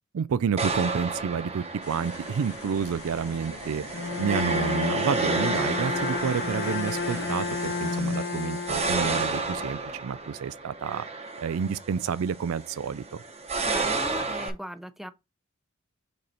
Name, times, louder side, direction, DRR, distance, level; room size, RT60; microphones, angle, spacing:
voice 1, 0.1-3.8 4.2-11.0 11.4-13.2, right 6 dB, 75° right, 0.4 m, -29 dB
sound 1, 0.6-14.5, right 3 dB, 30° right, 1.0 m, -32 dB
sound 2, 1.8-8.0, left 3 dB, 80° left, 1.5 m, -45 dB
Bowed string instrument, 3.9-9.9, left 4 dB, 50° left, 0.6 m, -32 dB
voice 2, 13.6-15.1, equal, ahead, 0.5 m, -38 dB
5.3 x 4.0 x 4.4 m
head